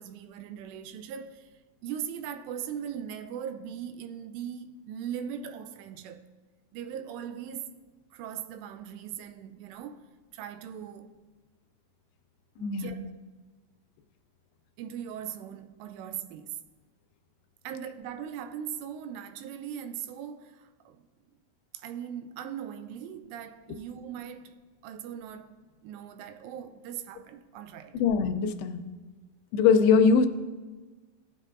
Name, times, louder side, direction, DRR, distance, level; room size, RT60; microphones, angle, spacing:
voice 1, 0.0-1.5 1.8-6.3 6.7-7.8 8.1-10.1 10.3-11.1 12.6-13.2 14.8-16.6 17.6-21.0 21.7-28.0, right 9 dB, 85° right, 2.7 m, -39 dB
voice 2, 12.6-12.9 27.9-28.8 29.5-30.3, left 5 dB, 85° left, 2.5 m, -22 dB
16.0 x 7.4 x 2.5 m
omnidirectional pair, 4.9 m